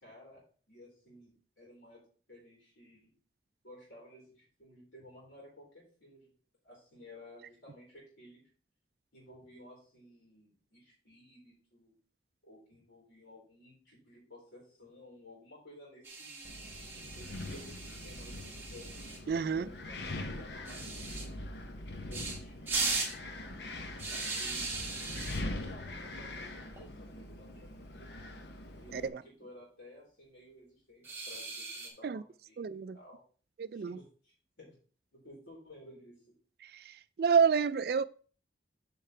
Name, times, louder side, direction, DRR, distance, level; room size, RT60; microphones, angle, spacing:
voice 1, 0.0-0.4 0.7-2.0 2.3-3.1 3.6-6.3 6.6-8.4 9.1-11.9 12.4-16.6 17.1-19.0 19.6-21.4 22.0-23.2 24.1-24.8 25.4-28.3 28.8-33.2 33.7-34.7 35.1-36.2, left 1 dB, 85° left, 4.2 m, -55 dB
sound 1, 16.0-19.2 20.6-21.2 22.1-22.4 22.7-23.1 24.0-25.4 26.6-26.8 27.1-27.2 27.5-27.6 28.9-29.4 31.0-31.9, right 3 dB, 10° right, 1.5 m, -38 dB
Wind, 16.5-29.1, left 2 dB, 65° left, 0.8 m, -43 dB
voice 2, 19.3-19.7 28.9-29.2 32.0-32.2 32.6-33.0 33.6-34.0 36.6-38.0, right 6 dB, 55° right, 0.3 m, -29 dB
8.5 x 5.5 x 3.3 m
head